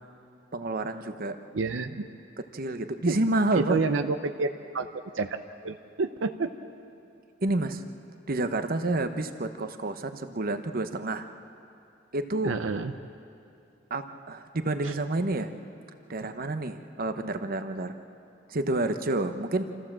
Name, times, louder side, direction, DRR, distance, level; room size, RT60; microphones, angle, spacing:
voice 1, 0.5-1.4 2.5-3.8 7.4-7.8 8.3-11.3 12.1-12.5 13.9-15.5 16.1-17.9 18.5-19.6, right 2 dB, 50° right, 9 dB, 1.0 m, -29 dB
voice 2, 1.5-2.1 3.1-3.2 3.5-4.5 4.7-4.9 5.1-6.5 12.4-12.9 14.8-14.9, right 4 dB, 80° right, 8 dB, 0.7 m, -29 dB
27.0 x 14.5 x 7.5 m, 2.6 s
head